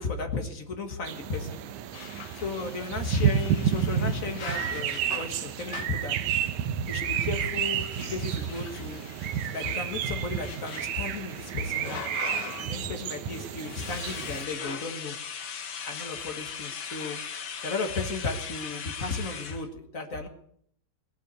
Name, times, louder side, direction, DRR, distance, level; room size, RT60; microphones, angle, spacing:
voice 1, 0.0-1.6 2.3-6.2 6.9-9.0 9.5-12.0 12.6-15.2 15.9-17.2 17.6-20.3, left 3 dB, 45° left, 5 dB, 1.1 m, -34 dB
sound 1, 1.1-14.4, right 9 dB, 70° right, 2.2 m, -31 dB
sound 2, 1.9-6.1 7.0-12.8 13.1-19.7, left 7 dB, 65° left, 1.0 m, -40 dB
19.0 x 9.2 x 8.2 m, 0.65 s
omnidirectional pair, 3.8 m